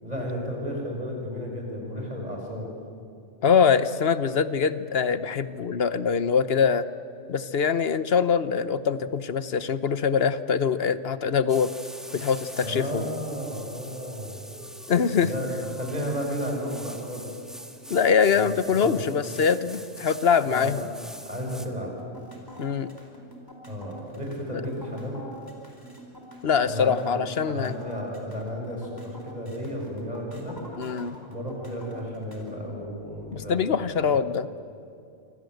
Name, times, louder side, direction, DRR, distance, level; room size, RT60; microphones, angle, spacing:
voice 1, 0.0-2.7 12.6-14.4 15.2-15.5 15.7-17.4 18.3-19.0 20.5-20.7 21.3-21.9 23.7-25.2 26.6-27.1 27.4-30.6 31.3-34.1, equal, 30° right, -1 dB, 7.0 m, -33 dB
voice 2, 3.4-6.9 7.3-11.7 12.1-13.1 14.9-15.3 17.9-20.8 22.6-22.9 26.4-27.7 30.8-31.2 33.3-34.5, left 6 dB, 55° left, 13 dB, 1.1 m, -23 dB
sound 1, 11.5-21.7, equal, ahead, 1.7 m, -43 dB
sound 2, 22.0-32.6, equal, 15° left, 4.2 m, -45 dB
27.5 x 25.0 x 7.9 m, 2.6 s
omnidirectional pair, 1.3 m